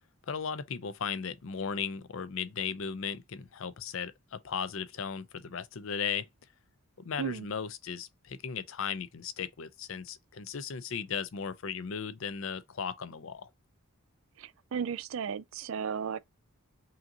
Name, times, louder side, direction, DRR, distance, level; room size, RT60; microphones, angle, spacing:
voice 1, 0.3-6.3 7.0-13.5, left 6 dB, 60° left, 0.5 m, -36 dB
voice 2, 14.4-16.2, right 7 dB, 60° right, 0.3 m, -35 dB
5.6 x 2.7 x 2.5 m
head